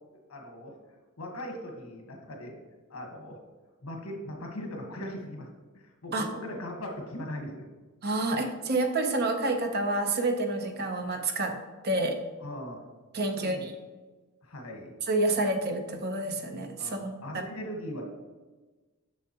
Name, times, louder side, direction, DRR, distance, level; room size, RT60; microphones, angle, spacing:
voice 1, 0.3-0.8 1.2-2.5 2.9-3.4 3.8-5.5 5.7-7.7 12.4-12.8 13.3-13.7 14.4-14.9 16.8-18.0, left 1 dB, 85° left, 2 dB, 1.3 m, -39 dB
voice 2, 8.0-11.6 11.8-12.2 13.1-13.6 15.1-17.4, right 2 dB, 50° right, 5 dB, 0.7 m, -28 dB
7.0 x 6.4 x 2.9 m, 1.3 s
head